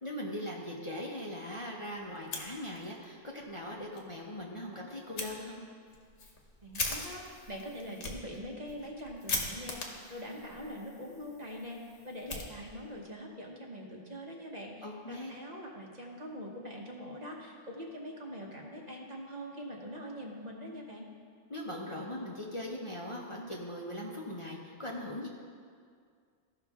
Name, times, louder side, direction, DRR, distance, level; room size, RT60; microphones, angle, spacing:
voice 1, 0.0-5.6 14.8-15.3 21.5-25.3, left 1 dB, 30° left, -3 dB, 0.8 m, -40 dB
Fire, 2.2-3.1 3.4-3.5 3.9-4.0 5.2-5.3 5.9-13.0, left 3 dB, 75° left, 1.4 m, -40 dB
voice 2, 6.6-21.1, equal, 40° right, -1 dB, 1.1 m, -43 dB
15.0 x 5.7 x 3.6 m, 2.1 s
omnidirectional pair, 1.2 m